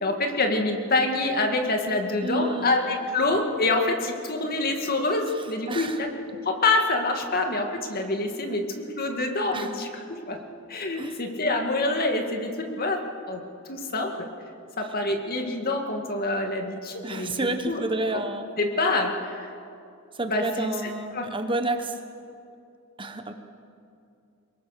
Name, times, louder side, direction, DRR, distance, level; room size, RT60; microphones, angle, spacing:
voice 1, 0.0-6.1 6.5-8.6 9.0-10.4 10.7-12.5 12.8-13.0 13.3-13.4 13.7-14.1 14.9-16.8 17.1-17.8 18.6-19.1 20.3-20.7 21.2-21.3, left 2 dB, 45° left, 3 dB, 2.3 m, -26 dB
voice 2, 2.2-2.8 5.7-6.0 9.5-9.7 11.0-11.2 17.0-18.5 20.1-22.0 23.0-23.3, right 2 dB, 25° right, 6 dB, 1.2 m, -29 dB
24.5 x 21.5 x 6.8 m, 2.5 s
head